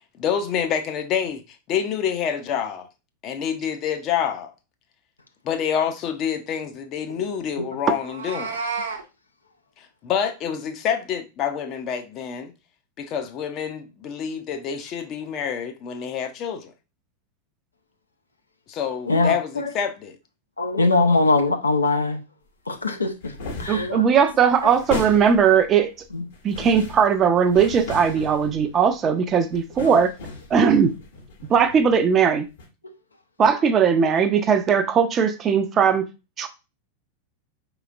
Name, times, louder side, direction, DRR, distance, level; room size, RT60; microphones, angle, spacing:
voice 1, 0.2-1.4 1.7-2.9 3.2-4.5 5.4-8.6 10.0-12.5 13.0-16.7 18.7-20.2, left 8 dB, 35° left, 0.6 m, -27 dB
Meow, 7.9-9.0, right 4 dB, 70° right, 0.8 m, -30 dB
voice 2, 19.1-19.7 20.6-22.2 22.7-23.1 23.6-24.0 26.1-26.2 29.9-30.0, left 3 dB, 80° left, 0.6 m, -21 dB
sound 1, 23.2-24.0 24.4-25.6 26.3-29.0 29.5-32.2 32.6-32.7, left 3 dB, 60° left, 1.2 m, -36 dB
voice 3, 23.7-25.9 26.4-30.1 30.5-30.9 31.5-32.5 33.4-36.1 36.4-36.5, right 7 dB, 25° right, 0.5 m, -19 dB
4.8 x 3.0 x 2.4 m
figure-of-eight pair, 90°, 0 cm